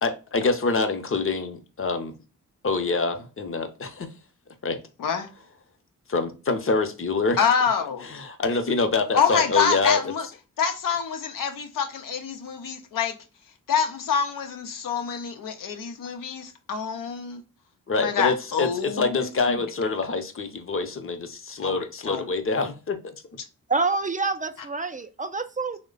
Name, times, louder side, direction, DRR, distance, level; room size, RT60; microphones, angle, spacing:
voice 1, 0.0-2.1 2.6-4.1 4.6-4.8 6.1-7.4 8.0-10.0 17.9-23.0, left 3 dB, 40° left, 0.7 m, -26 dB
voice 2, 7.4-8.1 9.1-10.3 10.6-13.2 13.7-17.4 18.0-19.6 21.6-22.3, left 6 dB, 85° left, 0.6 m, -26 dB
voice 3, 23.7-25.8, right 4 dB, 25° right, 0.3 m, -27 dB
3.1 x 2.1 x 3.8 m
cardioid pair, 60°, 32 cm